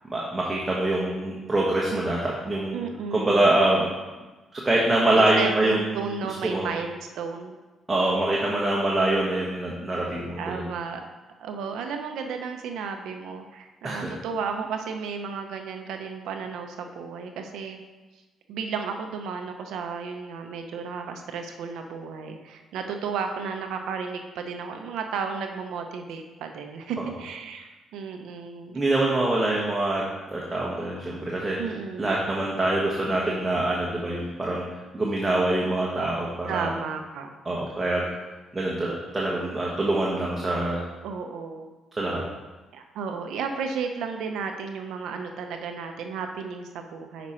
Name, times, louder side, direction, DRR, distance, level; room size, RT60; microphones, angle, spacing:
voice 1, 0.1-2.7 3.1-3.8 4.5-6.0 6.4-6.7 7.9-10.7 13.8-14.1 27.0-27.1 28.7-30.0 30.3-31.6 32.0-34.6 34.9-36.7 37.4-38.1 38.5-40.8 42.0-42.2, right 2 dB, 20° right, -4 dB, 1.2 m, -24 dB
voice 2, 2.7-3.5 5.1-7.6 10.4-11.0 11.4-17.8 18.5-28.8 31.6-32.1 36.5-37.3 41.0-41.8 42.7-47.3, right 5 dB, 85° right, 4 dB, 0.6 m, -33 dB
6.1 x 5.0 x 4.3 m, 1.2 s
cardioid pair, 90°, 0 cm